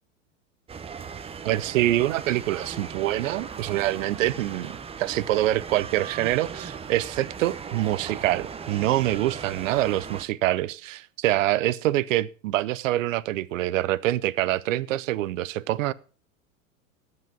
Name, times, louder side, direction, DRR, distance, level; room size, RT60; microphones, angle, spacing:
sound 1, 0.7-10.2, right 6 dB, 15° right, 0.7 m, -38 dB
voice 1, 1.4-4.7 5.0-15.9, right 15 dB, 70° right, 0.7 m, -25 dB
9.5 x 7.6 x 6.0 m
hypercardioid pair, 105°, 41 cm